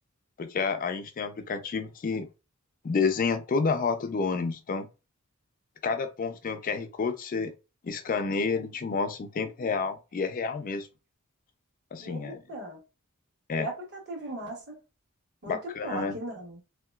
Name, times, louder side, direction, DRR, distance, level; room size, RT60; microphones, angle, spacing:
voice 1, 0.4-2.3 2.8-4.9 5.8-7.5 7.8-10.9 11.9-12.4 13.5-13.7 15.5-16.1, left 4 dB, 40° left, 0.4 m, -29 dB
voice 2, 12.0-12.8 13.6-14.8 15.4-15.6 15.8-16.6, right 1 dB, 50° right, 1.3 m, -38 dB
3.1 x 2.8 x 2.2 m
head